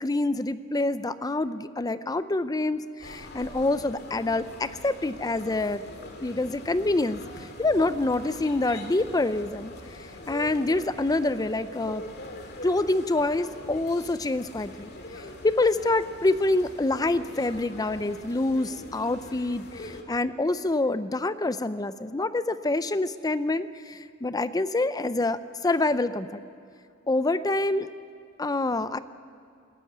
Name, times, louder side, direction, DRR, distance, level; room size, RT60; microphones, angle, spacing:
voice 1, 0.0-5.8 6.2-12.0 12.6-26.4 27.1-27.9 28.4-29.0, left 2 dB, 20° left, 13 dB, 0.5 m, -26 dB
sound 1, 3.0-20.0, left 1 dB, 55° left, 2.2 m, -43 dB
20.0 x 13.5 x 9.4 m, 2.4 s
head